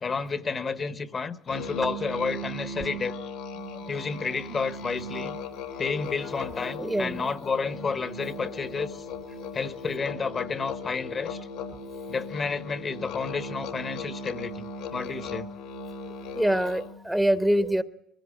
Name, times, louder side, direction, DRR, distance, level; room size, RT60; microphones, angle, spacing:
voice 1, 0.0-3.2 3.9-5.4 5.8-9.0 9.5-11.5 12.1-15.5, left 5 dB, 35° left, 1.1 m, -31 dB
Musical instrument, 1.5-17.0, left 2 dB, 85° left, 3.1 m, -37 dB
voice 2, 6.6-7.3 11.7-11.8 16.0-17.8, right 1 dB, 5° right, 1.0 m, -26 dB
21.5 x 16.0 x 8.7 m
supercardioid pair, 100°, 0 cm